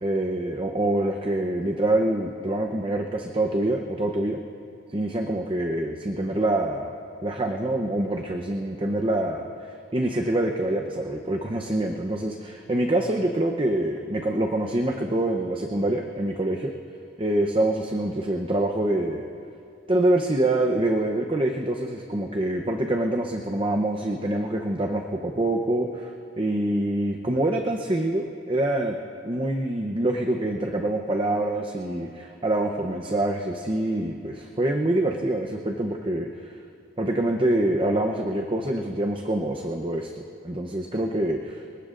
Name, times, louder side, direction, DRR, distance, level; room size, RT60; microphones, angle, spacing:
voice 1, 0.0-4.4 4.9-6.9 7.2-16.7 17.2-19.2 19.9-29.0 29.2-36.6 37.0-40.1 40.4-41.6, right 1 dB, 25° right, 2 dB, 0.8 m, -25 dB
27.0 x 19.0 x 2.6 m, 2.6 s
head